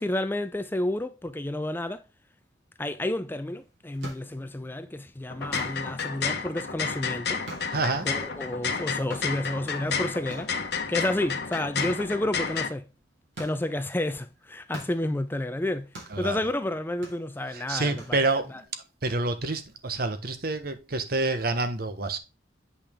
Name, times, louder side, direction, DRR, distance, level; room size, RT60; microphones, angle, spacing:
voice 1, 0.0-2.0 2.8-7.4 8.0-10.5 10.9-12.9 13.4-15.9 16.2-18.2 18.5-18.6, left 1 dB, 10° left, 0.4 m, -30 dB
sound 1, 3.5-18.7, right 2 dB, 90° right, 4.2 m, -48 dB
sound 2, 5.3-12.7, left 5 dB, 60° left, 1.1 m, -31 dB
voice 2, 7.7-8.1 16.1-16.4 17.5-18.6 19.0-22.2, right 3 dB, 55° right, 1.1 m, -28 dB
8.6 x 5.6 x 3.6 m
head